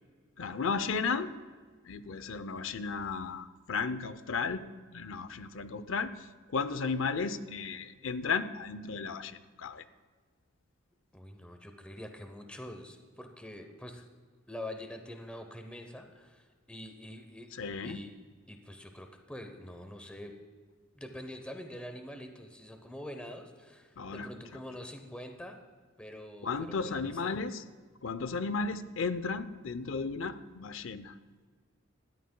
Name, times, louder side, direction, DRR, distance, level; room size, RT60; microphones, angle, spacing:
voice 1, 0.4-1.3 1.9-4.6 4.9-6.3 6.5-9.8 17.5-18.0 24.0-24.3 26.4-27.6 28.0-31.1, left 5 dB, 75° left, 13 dB, 0.6 m, -34 dB
voice 2, 11.1-14.0 14.5-17.5 17.8-18.1 18.5-20.3 20.9-25.6 26.0-27.4, left 1 dB, 5° left, 5 dB, 0.8 m, -45 dB
19.5 x 13.0 x 2.2 m, 1.5 s
head